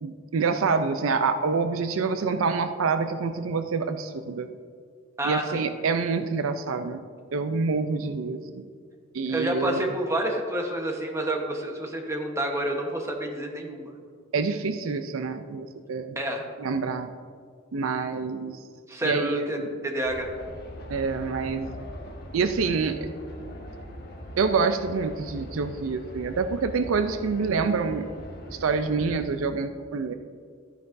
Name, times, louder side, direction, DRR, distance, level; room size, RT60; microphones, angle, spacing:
voice 1, 0.0-4.5 5.2-7.0 7.3-8.7 9.1-9.8 14.3-16.2 16.6-17.1 17.7-18.6 19.0-19.7 20.9-21.8 22.3-23.1 24.4-28.1 28.5-30.1, right 4 dB, 75° right, 9 dB, 0.4 m, -27 dB
voice 2, 5.2-5.7 9.3-13.9 16.2-16.5 18.9-20.3, right 1 dB, 15° right, 2 dB, 1.0 m, -29 dB
sound 1, 20.0-29.1, equal, 50° left, 1.6 m, -41 dB
12.5 x 9.3 x 2.6 m, 2.1 s
head